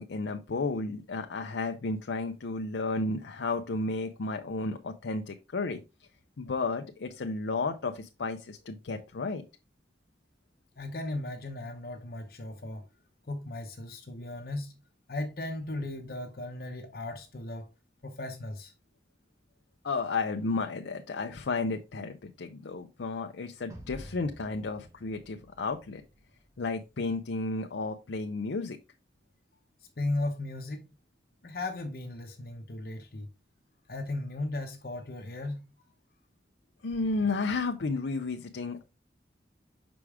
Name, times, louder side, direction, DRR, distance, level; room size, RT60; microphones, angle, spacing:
voice 1, 0.0-6.1 6.4-9.4 19.8-26.0 26.6-28.8 36.8-38.8, left 3 dB, 85° left, 0.6 m, -32 dB
voice 2, 10.8-12.8 13.3-14.7 15.1-17.7 18.0-18.7 30.0-30.9 31.4-33.3 33.9-35.6, left 2 dB, 55° left, 0.8 m, -36 dB
sound 1, 23.7-27.0, equal, 15° right, 1.2 m, -50 dB
6.0 x 4.9 x 3.5 m
head